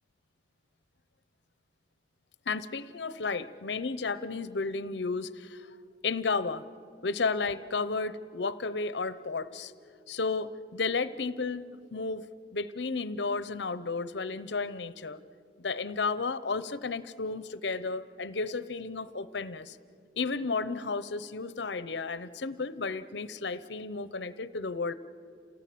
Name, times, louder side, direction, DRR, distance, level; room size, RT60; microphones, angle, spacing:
voice 1, 2.5-5.7 6.0-6.7 7.0-9.7 10.1-11.6 11.9-12.2 12.5-15.2 15.6-19.8 20.2-24.9, left 4 dB, 75° left, 15 dB, 0.8 m, -33 dB
28.0 x 18.0 x 8.5 m, 2.4 s
head